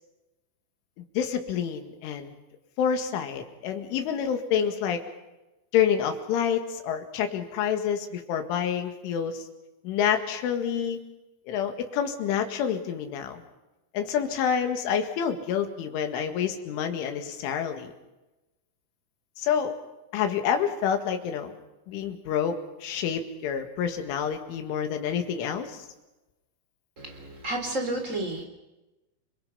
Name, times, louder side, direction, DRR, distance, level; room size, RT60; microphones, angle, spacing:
voice 1, 1.2-2.4 2.8-5.0 5.7-9.4 9.8-11.0 11.5-13.4 13.9-17.9 19.4-19.7 20.1-21.5 21.9-25.9, left 8 dB, 75° left, 6 dB, 4.3 m, -28 dB
voice 2, 27.0-28.4, right 1 dB, 20° right, 4 dB, 3.1 m, -31 dB
30.0 x 22.0 x 5.7 m, 1.0 s
omnidirectional pair, 5.8 m